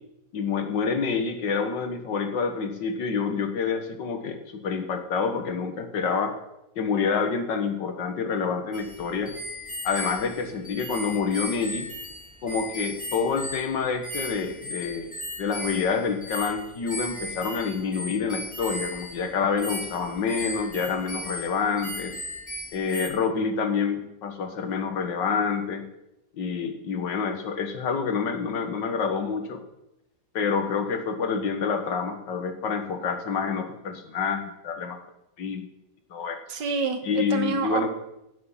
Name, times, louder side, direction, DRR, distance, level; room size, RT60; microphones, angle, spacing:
voice 1, 0.3-6.3 6.8-9.3 9.8-11.9 12.4-15.1 15.4-22.1 22.7-25.8 26.4-29.6 30.3-35.0 35.4-35.7 36.1-36.4 37.0-37.9, left 5 dB, 90° left, 7 dB, 2.1 m, -27 dB
sound 1, 8.7-23.1, equal, 5° left, 2.7 m, -37 dB
voice 2, 36.5-37.9, right 5 dB, 80° right, 8 dB, 1.9 m, -28 dB
16.0 x 7.7 x 5.6 m, 0.88 s
omnidirectional pair, 1.9 m